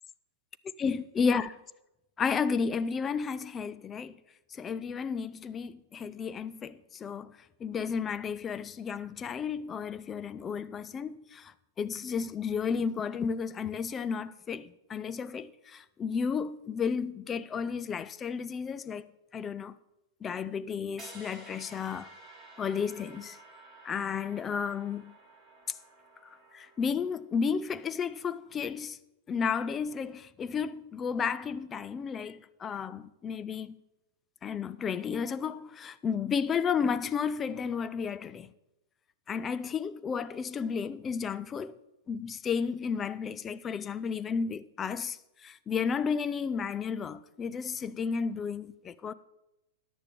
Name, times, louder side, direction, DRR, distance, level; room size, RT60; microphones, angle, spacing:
voice 1, 0.8-1.6 2.2-4.2 4.5-19.1 19.3-19.7 20.2-22.1 22.6-23.4 23.8-25.1 25.7-25.8 26.5-29.0 29.3-33.8 34.4-38.5 39.3-41.8 42.1-49.1, left 6 dB, 25° left, 0.5 m, -32 dB
sound 1, 21.0-27.1, right 2 dB, ahead, 4.3 m, -52 dB
14.0 x 10.0 x 3.7 m
hypercardioid pair, 110°, 0 cm